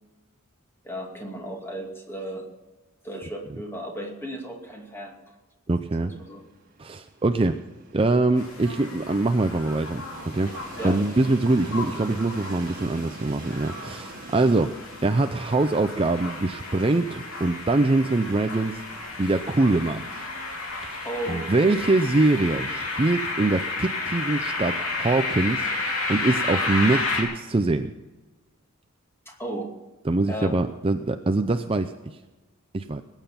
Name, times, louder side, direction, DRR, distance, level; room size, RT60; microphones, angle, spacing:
voice 1, 0.8-2.4 3.0-5.2 6.0-6.4 10.8-11.0 21.0-21.7 29.3-29.7 30.3-30.5, equal, 10° left, 1 dB, 2.3 m, -35 dB
voice 2, 5.7-6.1 6.8-7.6 7.9-10.0 10.3-10.5 10.8-14.7 15.0-18.8 19.2-20.1 20.8-25.7 26.1-27.9 30.1-31.9 32.7-33.0, right 2 dB, 25° right, 8 dB, 0.5 m, -23 dB
Train, 6.0-18.9, right 2 dB, 40° right, 1.8 m, -46 dB
sound 1, 8.4-27.2, left 3 dB, 80° left, 3.1 m, -32 dB
20.5 x 9.0 x 5.8 m, 1.2 s
head